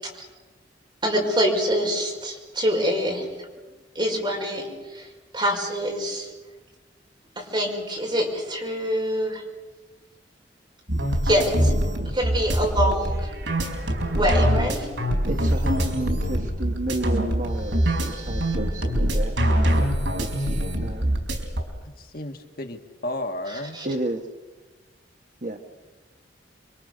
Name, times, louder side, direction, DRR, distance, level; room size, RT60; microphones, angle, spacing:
voice 1, 1.0-3.3 4.0-5.1 5.3-6.3 7.4-9.4 11.2-11.7 12.0-13.3 14.1-14.9 23.5-23.9, equal, 25° right, 0 dB, 5.5 m, -25 dB
sound 1, 10.9-21.6, equal, 85° right, 4.5 m, -24 dB
voice 2, 15.3-19.4 20.2-21.1 23.8-24.2 25.4-25.6, right 1 dB, 45° right, 5 dB, 1.3 m, -31 dB
voice 3, 22.0-23.8, left 1 dB, 55° left, 4 dB, 1.8 m, -33 dB
27.0 x 23.5 x 6.7 m, 1.2 s
head